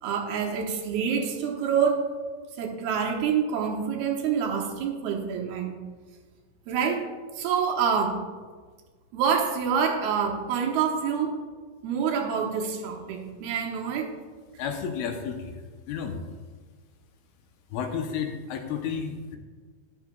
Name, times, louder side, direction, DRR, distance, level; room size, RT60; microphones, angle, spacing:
voice 1, 0.0-2.1 2.6-5.7 6.7-8.2 9.1-11.4 11.8-14.1, right 6 dB, 85° right, 1 dB, 2.9 m, -27 dB
voice 2, 14.6-15.6 15.9-16.2 17.7-19.4, left 6 dB, 80° left, 4 dB, 2.5 m, -32 dB
13.0 x 11.0 x 2.3 m, 1.5 s
omnidirectional pair, 4.4 m